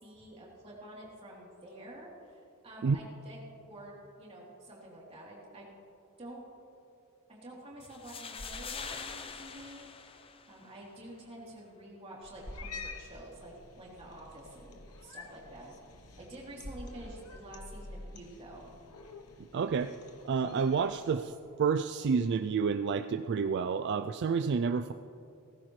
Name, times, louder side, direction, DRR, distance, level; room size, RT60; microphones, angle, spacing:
voice 1, 0.0-5.6 6.2-6.4 7.3-9.9 10.5-14.8 15.0-15.7 16.2-18.7, right 1 dB, 25° right, -5 dB, 3.3 m, -48 dB
sound 1, 7.8-10.8, left 5 dB, 25° left, 0.6 m, -44 dB
sound 2, 8.0-19.0, equal, 40° left, 2.8 m, -53 dB
Cat, 12.2-21.2, left 3 dB, 75° left, 1.1 m, -50 dB
voice 2, 19.5-19.9 20.2-21.3 21.6-24.9, right 5 dB, 50° right, 9 dB, 0.3 m, -29 dB
17.5 x 15.0 x 3.2 m, 2.7 s
head